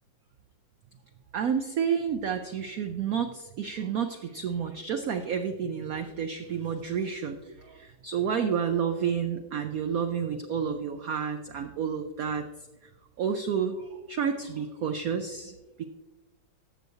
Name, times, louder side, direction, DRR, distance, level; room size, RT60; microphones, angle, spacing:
voice 1, 1.3-12.4 13.2-15.8, right 7 dB, 90° right, 7 dB, 0.7 m, -30 dB
12.5 x 7.8 x 2.7 m, 1.2 s
omnidirectional pair, 2.2 m